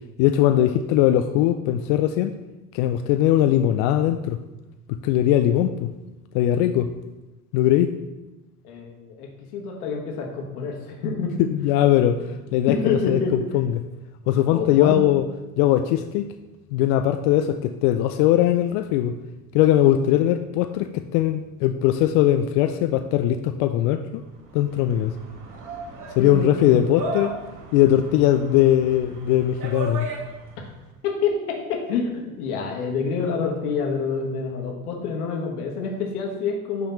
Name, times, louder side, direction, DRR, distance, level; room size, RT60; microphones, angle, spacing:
voice 1, 0.2-2.3 2.7-4.4 4.9-5.9 6.3-6.9 7.5-7.9 11.4-12.2 12.5-13.2 13.5-13.8 14.3-15.2 15.6-16.3 16.7-19.1 19.5-24.2 24.5-25.1 26.2-27.3 27.7-30.1, left 12 dB, 50° left, 9 dB, 0.4 m, -20 dB
voice 2, 8.6-11.4 12.7-13.3 14.5-15.0 26.2-26.8 31.0-36.9, left 5 dB, 75° left, 1 dB, 1.5 m, -27 dB
sound 1, 24.3-30.7, right 2 dB, 40° right, 2.0 m, -36 dB
6.0 x 3.4 x 5.5 m, 1.0 s
hypercardioid pair, 85°, 45 cm